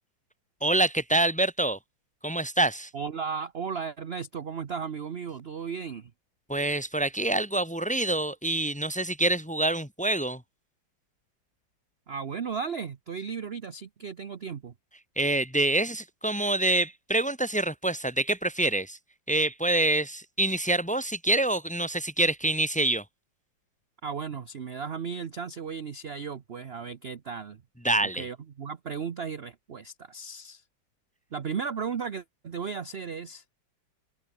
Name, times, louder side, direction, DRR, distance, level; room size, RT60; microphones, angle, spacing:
voice 1, 0.6-1.8 2.2-2.9 6.5-10.4 15.2-19.0 19.3-23.0 27.8-28.2, right 2 dB, 5° left, 1.4 m, -26 dB
voice 2, 2.9-6.1 12.1-14.7 24.0-27.6 28.0-30.6 31.3-33.4, right 6 dB, 45° right, 0.9 m, -35 dB
open air
omnidirectional pair, 2.1 m